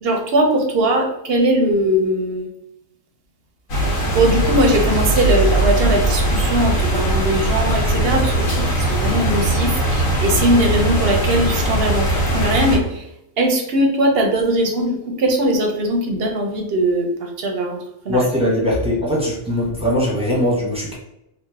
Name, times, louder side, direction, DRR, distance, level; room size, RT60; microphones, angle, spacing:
voice 1, 0.0-2.5 4.1-13.1 13.4-17.8 18.0-18.2 20.2-20.3, right 1 dB, 55° right, 2 dB, 0.8 m, -20 dB
sound 1, 3.7-12.8, right 1 dB, 75° left, 1.3 m, -19 dB
voice 2, 18.1-20.9, equal, 5° right, -5 dB, 0.8 m, -20 dB
3.1 x 2.4 x 3.4 m, 0.81 s
omnidirectional pair, 1.4 m